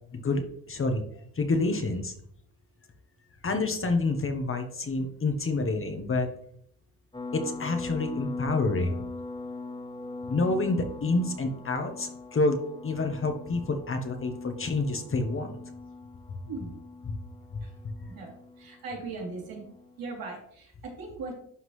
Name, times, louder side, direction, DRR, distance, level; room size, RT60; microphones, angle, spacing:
voice 1, 0.1-2.1 3.4-6.3 7.3-9.0 10.3-15.5 17.0-17.1 17.5-17.6, left 3 dB, 40° left, 5 dB, 1.1 m, -28 dB
sound 1, 7.1-20.1, left 3 dB, 15° left, 1.6 m, -41 dB
voice 2, 18.6-19.6 20.0-21.4, right 3 dB, 80° right, -3 dB, 3.1 m, -38 dB
11.5 x 3.9 x 3.2 m, 0.67 s
cardioid pair, 80°, 34 cm